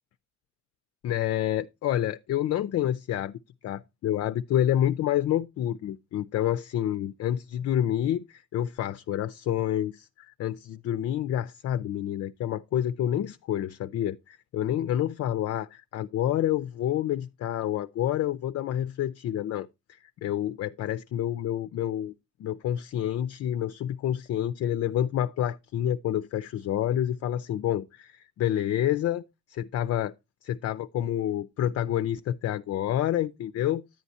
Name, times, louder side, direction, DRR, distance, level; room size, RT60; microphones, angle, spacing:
voice 1, 1.0-3.4 3.6-22.1 22.4-30.1 30.4-33.8, left 11 dB, 55° left, 0.4 m, -28 dB
10.5 x 8.1 x 2.7 m
cardioid pair, 90°, 30 cm